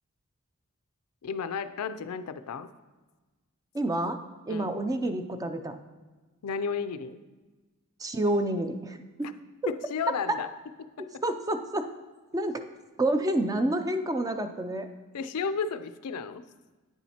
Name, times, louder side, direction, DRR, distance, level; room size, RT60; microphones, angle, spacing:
voice 1, 1.2-2.7 4.5-4.8 6.4-7.2 9.7-10.5 11.0-11.2 15.1-16.4, left 5 dB, 85° left, 12 dB, 0.4 m, -33 dB
voice 2, 3.7-4.2 4.5-5.8 8.0-9.3 11.0-11.9 12.3-12.6 13.0-14.9, right 1 dB, 15° right, 8 dB, 0.4 m, -29 dB
9.2 x 7.1 x 2.8 m, 1.2 s
head